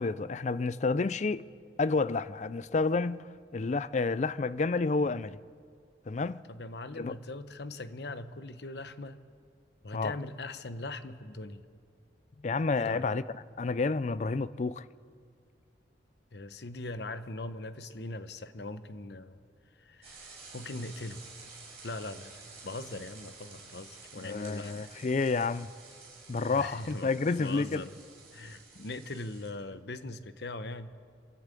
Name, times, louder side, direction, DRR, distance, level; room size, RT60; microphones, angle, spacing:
voice 1, 0.0-1.4 1.8-3.2 3.5-5.4 6.1-6.4 7.0-7.1 9.9-10.1 12.4-13.2 13.6-14.8 24.2-25.7 26.3-27.9, left 3 dB, 40° left, 0.4 m, -29 dB
voice 2, 6.5-9.2 9.8-11.6 12.8-13.1 16.3-19.4 19.8-21.2 21.8-24.9 26.5-27.1 27.4-27.9 28.3-30.9, left 2 dB, 65° left, 0.9 m, -41 dB
sound 1, 20.0-29.5, right 4 dB, 35° right, 6.5 m, -51 dB
27.5 x 12.0 x 8.4 m
head